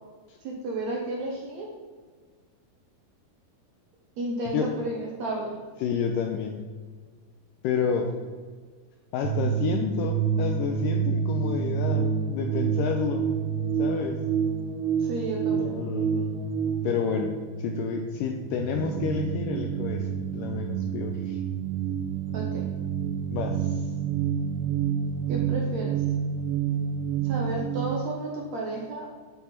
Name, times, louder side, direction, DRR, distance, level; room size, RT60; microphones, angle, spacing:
voice 1, 0.4-1.7 4.2-5.6 15.0-15.7 22.3-22.7 25.3-25.9 27.2-29.1, right 2 dB, 65° right, -1 dB, 1.8 m, -32 dB
voice 2, 5.8-6.6 7.6-8.1 9.1-13.3 13.8-14.2 15.5-16.4 16.8-17.3 17.6-21.4 23.3-23.9, left 6 dB, 85° left, 4 dB, 2.0 m, -30 dB
sound 1, 9.2-28.0, right 7 dB, 80° right, 2.6 m, -28 dB
11.5 x 5.7 x 4.4 m, 1.5 s
omnidirectional pair, 4.5 m